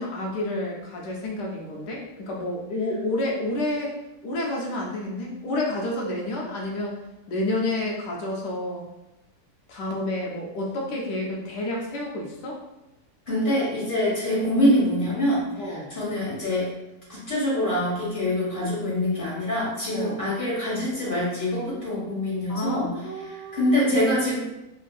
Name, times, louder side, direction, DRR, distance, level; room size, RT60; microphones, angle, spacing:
voice 1, 0.0-3.9 4.2-7.0 7.3-8.8 9.7-12.6 15.6-15.9 19.9-20.2 22.5-23.7, left 1 dB, 85° left, -2 dB, 1.3 m, -29 dB
voice 2, 13.3-16.7 17.1-22.9 23.3-24.4, left 1 dB, 35° left, -7 dB, 1.4 m, -25 dB
3.6 x 2.5 x 2.3 m, 0.94 s
omnidirectional pair, 1.8 m